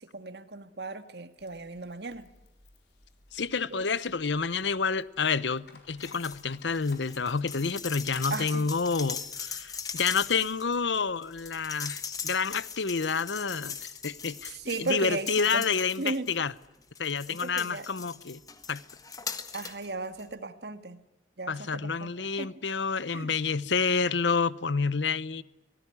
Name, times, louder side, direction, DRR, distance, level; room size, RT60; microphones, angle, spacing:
voice 1, 0.0-2.3 3.7-3.9 8.3-8.7 14.4-15.7 16.0-16.3 17.3-17.9 19.5-21.0 21.4-22.5 23.1-23.4, right 3 dB, 70° right, 1.6 m, -36 dB
sound 1, 1.4-15.1, left 4 dB, 70° left, 4.6 m, -58 dB
voice 2, 3.3-16.5 17.0-18.4 18.7-18.8 21.5-25.4, left 5 dB, 90° left, 0.9 m, -29 dB
sound 2, 6.0-6.4 6.7-16.5 16.9-19.9 20.2-20.3, left 6 dB, 20° left, 1.4 m, -40 dB
24.5 x 17.5 x 9.8 m
head